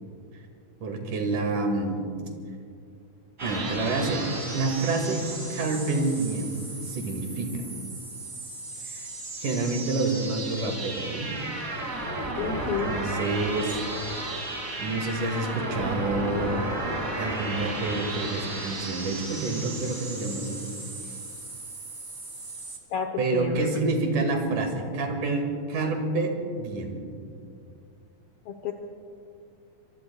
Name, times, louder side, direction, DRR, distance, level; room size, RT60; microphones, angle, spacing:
voice 1, 0.8-2.0 3.4-5.3 5.5-7.6 8.8-9.1 9.4-11.3 12.9-13.8 14.8-16.6 17.2-20.6 23.2-27.0, right 3 dB, 75° right, 3 dB, 3.6 m, -28 dB
sound 1, 3.4-22.8, right 2 dB, 30° right, 2.6 m, -34 dB
voice 2, 12.4-12.9 22.9-23.8 28.4-28.7, left 7 dB, 70° left, 4 dB, 1.3 m, -31 dB
25.0 x 23.5 x 2.3 m, 2.3 s
omnidirectional pair, 3.6 m